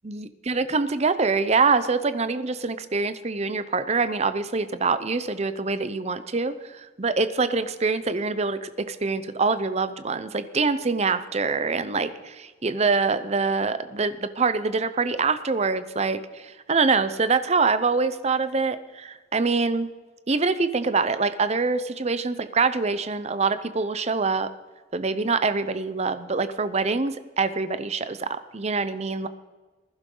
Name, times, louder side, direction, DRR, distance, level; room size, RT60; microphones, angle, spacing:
voice 1, 0.0-19.9 20.3-24.5 24.9-29.3, right 4 dB, 35° right, 12 dB, 0.7 m, -25 dB
20.0 x 11.5 x 3.9 m, 1.4 s
head